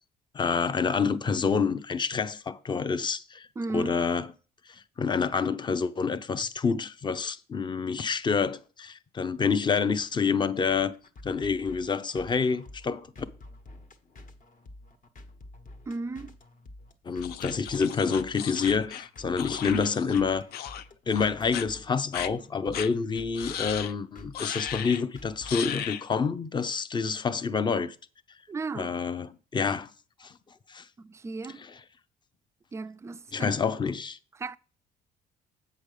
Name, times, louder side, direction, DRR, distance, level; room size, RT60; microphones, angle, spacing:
voice 1, 0.3-4.3 4.7-10.9 11.2-13.1 17.0-20.4 21.1-27.9 28.7-29.9 30.2-30.3 30.7-30.9 33.3-34.2, left 5 dB, 25° left, 0.7 m, -28 dB
voice 2, 3.6-4.0 15.9-16.4 19.7-19.8 28.5-29.0 31.0-31.6 32.7-33.6 34.4-34.6, right 3 dB, 15° right, 0.4 m, -35 dB
sound 1, 11.0-26.1, left 1 dB, 50° left, 1.5 m, -49 dB
sound 2, 17.2-20.2 20.5-20.8 21.1-21.7 22.1-22.3 22.7-22.9 23.4-23.9 24.3-25.0 25.5-26.0, left 10 dB, 65° left, 0.6 m, -36 dB
8.3 x 5.2 x 6.6 m
cardioid pair, 110°, 17 cm